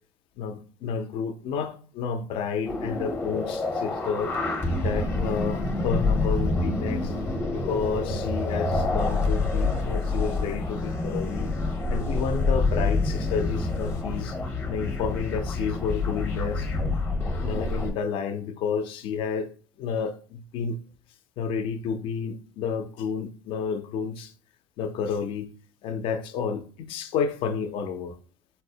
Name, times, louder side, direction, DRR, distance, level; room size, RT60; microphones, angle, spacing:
voice 1, 0.4-4.3 4.8-7.1 7.5-11.5 11.9-14.4 14.7-16.7 17.2-19.5 19.8-20.8 21.4-24.3 24.8-25.5 25.8-28.2, left 6 dB, 60° left, 0.4 m, -30 dB
sound 1, 2.6-17.9, left 2 dB, 20° left, 0.7 m, -27 dB
4.1 x 2.0 x 2.7 m
cardioid pair, 120°, 10 cm